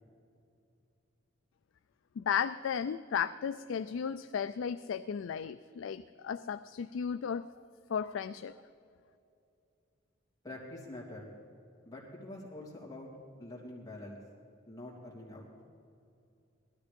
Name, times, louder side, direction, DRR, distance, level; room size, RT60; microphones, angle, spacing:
voice 1, 2.2-7.5 7.9-8.5, left 7 dB, 75° left, 11 dB, 0.3 m, -34 dB
voice 2, 10.4-11.4 11.8-13.1 13.4-14.2 14.7-15.5, left 1 dB, 15° left, -4 dB, 2.9 m, -45 dB
18.0 x 13.0 x 5.2 m, 2.6 s
head